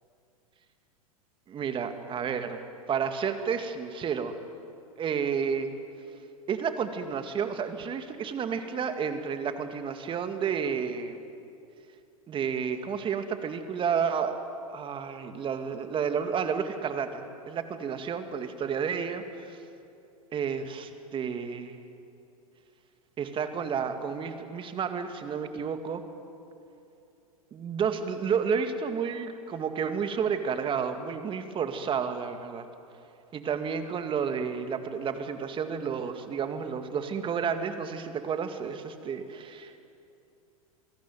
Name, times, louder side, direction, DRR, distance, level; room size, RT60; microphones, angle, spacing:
voice 1, 1.5-4.4 5.0-5.7 6.5-11.2 12.3-14.4 14.7-19.6 20.3-21.8 23.2-26.0 27.5-32.7 33.3-39.8, right 6 dB, 25° right, 8 dB, 2.2 m, -31 dB
27.5 x 18.0 x 9.4 m, 2.7 s
hypercardioid pair, 100°, 19 cm